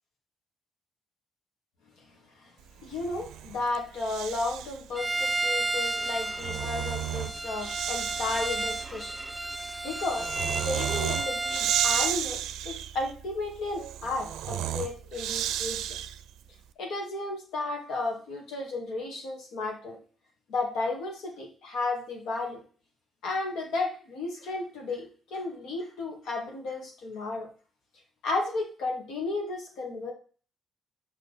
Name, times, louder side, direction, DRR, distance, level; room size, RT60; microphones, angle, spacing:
voice 1, 2.8-9.2 9.8-16.0 16.8-20.0 20.5-22.6 23.2-27.5 28.2-30.1, left 3 dB, 80° left, 1 dB, 2.1 m, -33 dB
Breathing, 2.9-4.9 6.1-16.4, right 11 dB, 90° right, 0.4 m, -33 dB
Bowed string instrument, 5.0-12.2, right 2 dB, 10° right, 0.3 m, -32 dB
5.6 x 5.2 x 4.1 m, 0.40 s
cardioid pair, 90°, 0 cm